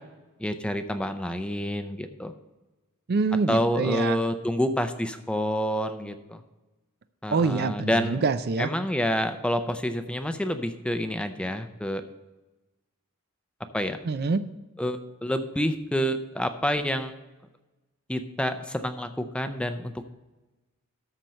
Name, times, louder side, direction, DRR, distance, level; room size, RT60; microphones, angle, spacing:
voice 1, 0.4-2.3 3.5-6.4 7.2-8.2 8.6-12.0 13.7-14.0 14.8-17.1 18.1-20.1, equal, 5° left, 8 dB, 0.5 m, -28 dB
voice 2, 3.1-4.2 7.3-8.7 14.1-14.4, right 4 dB, 45° right, 12 dB, 0.4 m, -25 dB
13.5 x 4.5 x 6.3 m, 1.1 s
head